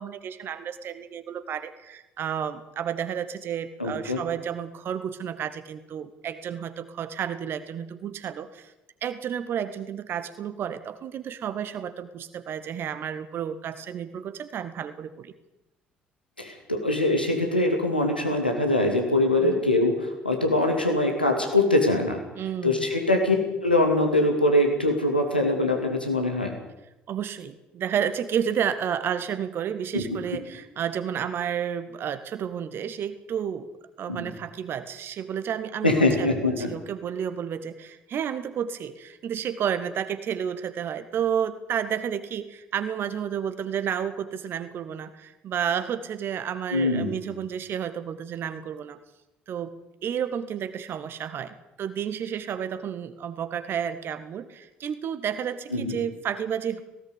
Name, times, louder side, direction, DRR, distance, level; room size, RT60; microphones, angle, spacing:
voice 1, 0.0-8.7 9.0-15.3 19.4-19.6 22.4-22.9 27.1-33.7 34.0-49.0 49.5-49.7 50.0-56.8, right 8 dB, 50° right, 11 dB, 1.8 m, -31 dB
voice 2, 3.8-4.2 16.4-22.2 22.6-26.5 29.9-30.0 34.1-34.2 35.8-36.7 46.7-47.1 55.7-56.0, left 2 dB, 90° left, 2 dB, 2.7 m, -23 dB
17.5 x 17.5 x 8.4 m, 0.93 s
figure-of-eight pair, 50°, 5 cm